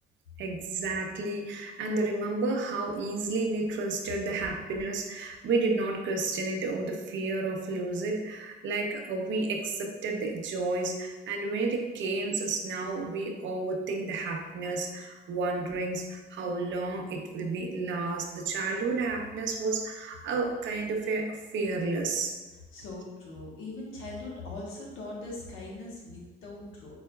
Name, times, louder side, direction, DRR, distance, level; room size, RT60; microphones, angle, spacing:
voice 1, 0.4-22.3, right 3 dB, 70° right, 2 dB, 0.6 m, -31 dB
voice 2, 22.7-26.9, left 2 dB, 85° left, -3 dB, 1.1 m, -41 dB
4.3 x 3.8 x 2.2 m, 1.2 s
cardioid pair, 90°, 20 cm